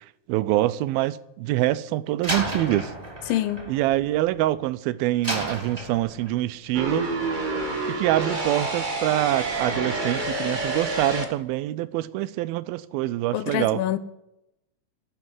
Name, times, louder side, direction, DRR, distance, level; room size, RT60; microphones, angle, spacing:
voice 1, 0.3-2.9 3.7-7.1 7.9-13.8, right 15 dB, 85° right, 2.5 m, -25 dB
Slam, 2.2-4.7 5.2-6.5, right 1 dB, 10° right, 2.7 m, -33 dB
voice 2, 3.3-3.7 13.3-14.0, left 13 dB, 75° left, 2.5 m, -26 dB
sound 1, 6.7-11.2, right 2 dB, 50° right, 0.5 m, -28 dB
12.5 x 8.4 x 9.6 m
omnidirectional pair, 4.2 m